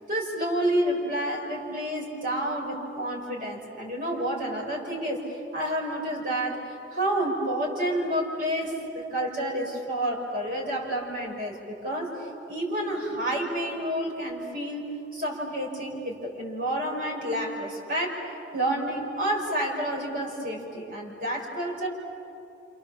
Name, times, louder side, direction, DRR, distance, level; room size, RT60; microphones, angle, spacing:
voice 1, 0.1-5.2 5.5-18.2 18.5-21.9, right 1 dB, 50° right, -1 dB, 5.5 m, -29 dB
28.5 x 28.0 x 7.3 m, 2.7 s
head